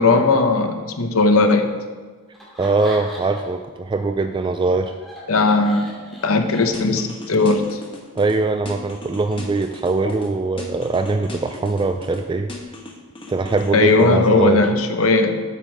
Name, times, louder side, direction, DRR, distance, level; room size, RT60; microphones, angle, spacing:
voice 1, 0.0-1.7 5.3-5.9 6.2-7.8 13.7-15.4, left 3 dB, 75° left, 6 dB, 0.9 m, -17 dB
Laughter, 2.3-3.6 4.0-7.2, equal, ahead, 2.3 m, -39 dB
voice 2, 2.6-4.9 8.2-12.5 13.3-14.6, right 3 dB, 20° right, 7 dB, 0.3 m, -21 dB
sound 1, 6.7-8.4 8.7-10.3 10.6-12.2 12.5-14.1, left 2 dB, 25° left, 1.2 m, -37 dB
8.1 x 7.2 x 4.8 m, 1.4 s
head